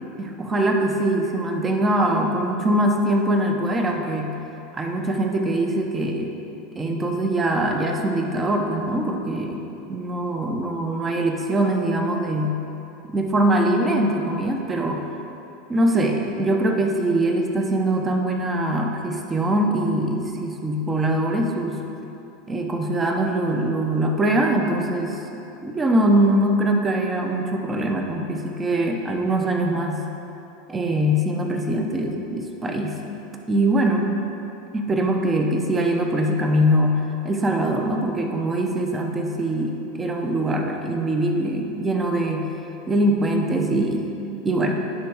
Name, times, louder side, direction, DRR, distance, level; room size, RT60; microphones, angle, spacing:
voice 1, 0.2-4.4 4.7-6.3 6.8-9.6 9.9-12.6 13.1-15.1 15.7-21.8 22.5-25.2 25.6-30.1 30.7-33.2 33.5-34.1 34.7-42.5 42.9-44.1 44.4-44.7, right 1 dB, 25° right, 2 dB, 0.9 m, -22 dB
10.5 x 3.5 x 4.8 m, 3.0 s
hypercardioid pair, 90°, 0 cm